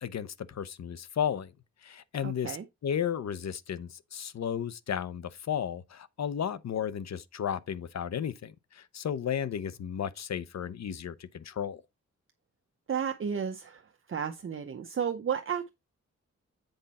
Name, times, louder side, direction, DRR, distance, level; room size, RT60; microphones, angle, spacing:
voice 1, 0.0-1.5 1.8-2.6 2.8-11.8, left 8 dB, 65° left, 0.7 m, -34 dB
voice 2, 2.2-2.6 12.9-13.8 14.1-15.7, right 7 dB, 45° right, 0.7 m, -32 dB
8.0 x 5.1 x 4.2 m
wide cardioid pair, 165°, 29 cm